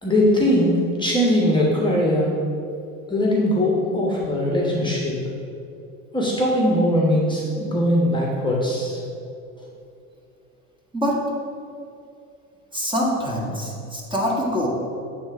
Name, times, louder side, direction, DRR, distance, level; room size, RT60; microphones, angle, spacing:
voice 1, 0.0-2.3 3.1-5.2 6.1-9.0, left 1 dB, 10° left, -3 dB, 1.2 m, -20 dB
voice 2, 12.7-14.7, equal, 10° right, -3 dB, 1.4 m, -24 dB
8.7 x 3.5 x 4.8 m, 2.6 s
hypercardioid pair, 90°, 41 cm